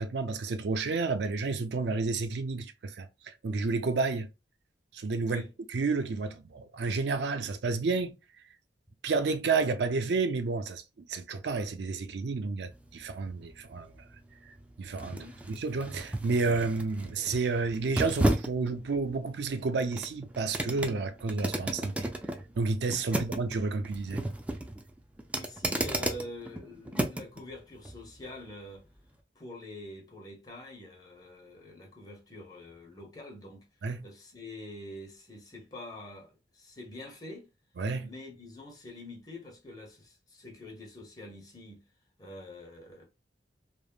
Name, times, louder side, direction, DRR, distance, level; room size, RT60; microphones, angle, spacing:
voice 1, 0.0-4.3 4.9-5.4 5.7-8.1 9.0-10.8 11.1-13.9 14.8-22.1 22.6-24.2 33.8-34.0 37.8-38.1, right 4 dB, 70° right, 0.4 m, -30 dB
sound 1, 12.7-27.4 27.8-28.0, right 1 dB, 10° right, 0.3 m, -34 dB
voice 2, 15.1-15.4 23.1-23.2 25.3-28.8 29.3-33.7 34.0-36.3 36.5-37.5 38.0-41.9 42.2-43.1, left 1 dB, 20° left, 0.9 m, -46 dB
3.3 x 2.0 x 2.2 m
head